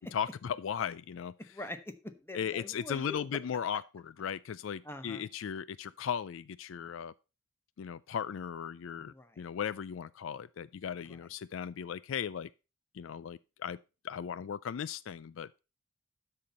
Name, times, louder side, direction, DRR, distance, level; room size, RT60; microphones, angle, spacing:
voice 1, 0.1-1.3 2.3-7.1 7.8-12.5 12.9-13.8 14.0-15.6, left 8 dB, 75° left, 0.4 m, -37 dB
voice 2, 1.5-3.3 4.8-5.3 9.1-9.4 11.1-11.2, left 2 dB, 10° left, 1.0 m, -44 dB
12.5 x 4.4 x 5.2 m
head